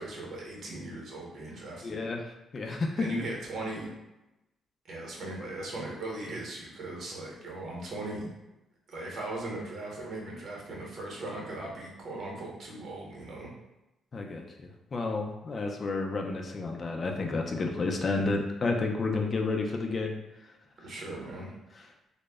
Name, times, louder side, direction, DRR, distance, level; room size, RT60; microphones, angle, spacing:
voice 1, 0.0-2.1 3.0-3.9 4.9-8.3 8.9-13.5 20.8-21.5, right 2 dB, 60° right, -2 dB, 0.8 m, -38 dB
voice 2, 1.8-2.3 2.5-3.1 14.1-20.2, left 3 dB, 40° left, 2 dB, 0.4 m, -31 dB
2.0 x 2.0 x 3.4 m, 0.96 s
cardioid pair, 90°, 0 cm